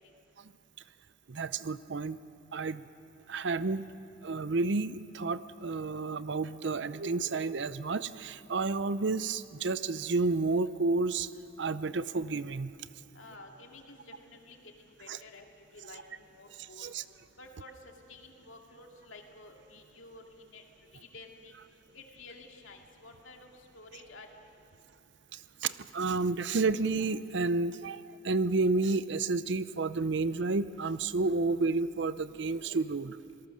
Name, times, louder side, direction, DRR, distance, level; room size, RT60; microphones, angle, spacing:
voice 1, 1.3-2.2 2.5-2.8 3.3-3.9 4.2-11.3 11.6-12.7 15.1-15.2 16.6-17.0 25.3-33.2, right 3 dB, 65° right, 15 dB, 0.6 m, -31 dB
voice 2, 13.1-15.5 15.7-16.9 17.4-17.7 18.1-20.6 20.9-21.6 21.9-24.3, left 3 dB, 85° left, 2 dB, 2.4 m, -51 dB
26.5 x 18.5 x 6.4 m, 2.9 s
head